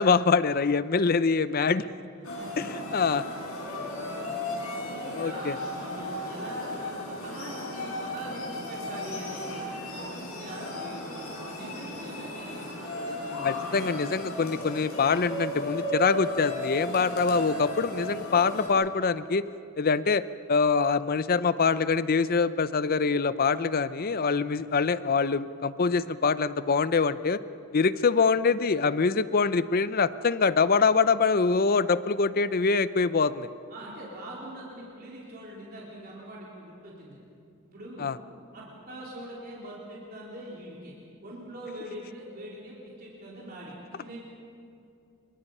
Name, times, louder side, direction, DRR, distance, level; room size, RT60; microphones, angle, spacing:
voice 1, 0.0-1.8 2.9-3.2 5.2-5.6 13.4-19.4 19.8-20.2 20.5-27.4 27.7-33.5 38.0-38.1, left 5 dB, 45° left, 15 dB, 0.6 m, -24 dB
sound 1, 2.2-18.7, equal, 85° left, 6.8 m, -35 dB
voice 2, 2.2-2.5 3.8-4.1 4.7-12.7 13.0-13.5 24.2-24.6 33.7-37.2 37.6-38.1 38.5-40.9 41.2-44.2, right 1 dB, 45° right, -5 dB, 3.9 m, -43 dB
27.5 x 24.0 x 5.5 m, 2.6 s
head